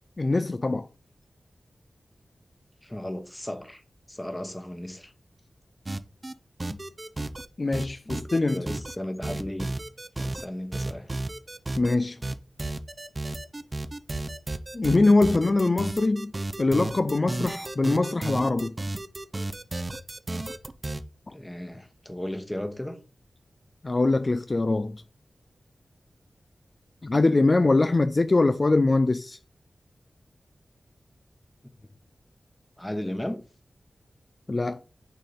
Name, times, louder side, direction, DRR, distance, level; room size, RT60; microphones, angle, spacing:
voice 1, 0.2-0.9 6.7-6.8 7.6-8.7 11.8-12.2 14.7-16.3 16.6-18.7 23.8-25.0 27.0-29.4 34.5-34.8, left 2 dB, 40° left, 0.3 m, -23 dB
voice 2, 2.8-3.8 4.1-5.1 8.0-9.7 10.2-11.1 21.3-23.0 32.8-33.4, left 1 dB, 15° left, 1.1 m, -35 dB
sound 1, 5.9-6.3 6.6-7.5 7.7-9.0 9.2-10.5 10.7-12.0 12.2-21.0, right 2 dB, 35° right, 0.6 m, -33 dB
6.4 x 4.2 x 4.2 m
wide cardioid pair, 65°, 0 cm